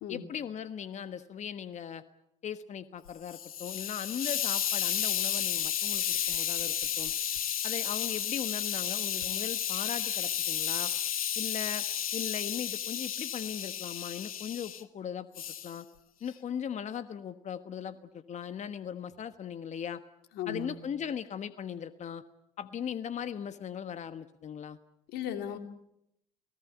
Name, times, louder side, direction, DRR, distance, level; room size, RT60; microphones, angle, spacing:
voice 1, 0.1-2.0 2.4-7.1 7.6-10.9 11.3-11.9 12.1-15.3 15.6-15.9 16.2-20.0 20.5-22.2 22.6-24.8, left 8 dB, 40° left, 12 dB, 1.3 m, -38 dB
Hiss, 3.1-14.8 15.4-15.7, left 9 dB, 90° left, 1.0 m, -32 dB
voice 2, 20.3-20.8 25.1-25.6, left 8 dB, 65° left, 7 dB, 3.0 m, -36 dB
29.0 x 18.5 x 8.1 m, 0.80 s
hypercardioid pair, 60°, 18 cm